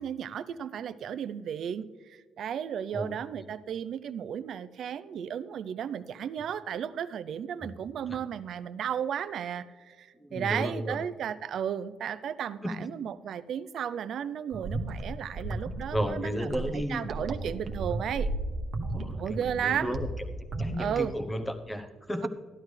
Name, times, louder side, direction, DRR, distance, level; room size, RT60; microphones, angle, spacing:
voice 1, 0.0-18.3 19.1-20.0 20.8-21.1, right 8 dB, 55° right, 14 dB, 0.4 m, -34 dB
voice 2, 2.9-3.5 7.6-7.7 8.1-8.2 10.1-11.0 12.6-12.9 15.9-17.1 18.9-20.1 20.6-22.3, equal, 10° left, 7 dB, 0.8 m, -34 dB
sound 1, 14.5-21.1, right 2 dB, 40° right, 1.0 m, -34 dB
13.5 x 11.5 x 3.2 m, 1.5 s
cardioid pair, 140°, 0 cm